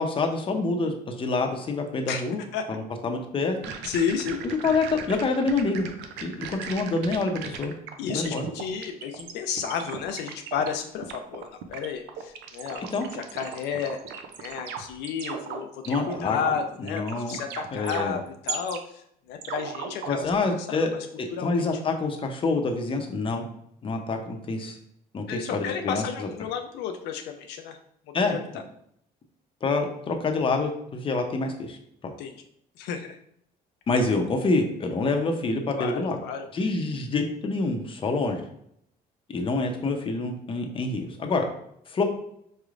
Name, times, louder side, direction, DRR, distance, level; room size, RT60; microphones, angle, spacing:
voice 1, 0.0-2.4 2.7-3.6 4.6-5.8 6.2-7.7 8.0-8.5 12.9-13.1 15.8-16.4 16.8-17.4 17.7-18.2 20.1-23.4 23.8-24.8 25.1-26.3 28.1-28.4 29.6-31.8 32.0-32.1 33.9-36.2 36.5-38.4 39.3-41.5 41.9-42.0, left 3 dB, 30° left, 4 dB, 0.7 m, -27 dB
sound 1, 3.6-9.3 9.6-10.7 11.0-18.8 19.4-20.5, right 7 dB, 90° right, 0.5 m, -37 dB
voice 2, 3.8-4.4 8.0-14.0 14.4-15.7 16.1-20.3 20.6-21.1 21.3-21.7 25.3-27.8 28.2-28.4 32.2-32.4 32.8-33.2 35.8-36.4, left 7 dB, 80° left, 5 dB, 0.4 m, -32 dB
4.7 x 3.1 x 2.5 m, 0.71 s
cardioid pair, 110°, 17 cm